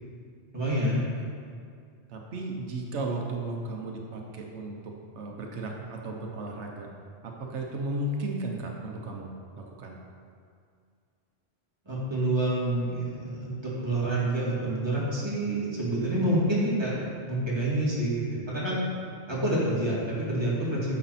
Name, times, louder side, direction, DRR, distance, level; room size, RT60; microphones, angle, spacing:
voice 1, 0.5-1.0 11.9-17.0 17.3-18.8 19.3-21.0, right 1 dB, 25° right, -8 dB, 2.4 m, -27 dB
voice 2, 2.1-6.9 7.2-10.0, right 2 dB, 90° right, 0 dB, 1.2 m, -35 dB
10.0 x 6.5 x 4.2 m, 2.3 s
omnidirectional pair, 1.1 m